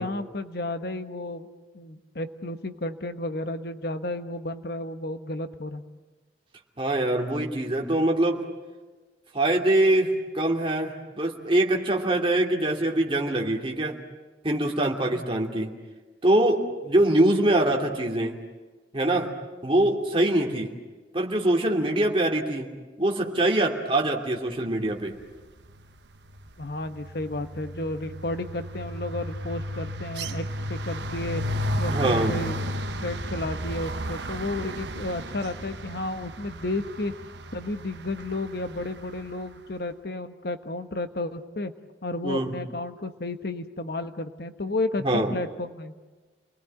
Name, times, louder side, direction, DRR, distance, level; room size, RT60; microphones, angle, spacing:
voice 1, 0.0-1.5 1.7-5.8 15.1-15.2 26.6-30.4 30.7-31.4 31.8-32.6 33.0-37.1 37.5-41.7 42.0-45.9, left 2 dB, 60° left, 9 dB, 1.3 m, -32 dB
voice 2, 6.8-8.4 9.3-13.9 14.4-15.7 16.2-18.4 18.9-19.3 19.6-20.7 21.1-22.7 23.0-25.2 31.9-32.4 42.2-42.5 45.0-45.3, right 1 dB, 30° right, 0 dB, 2.8 m, -23 dB
sound 1, 25.5-25.9 26.1-39.3, equal, 75° right, 1.2 m, -33 dB
29.5 x 20.5 x 9.0 m, 1.3 s
head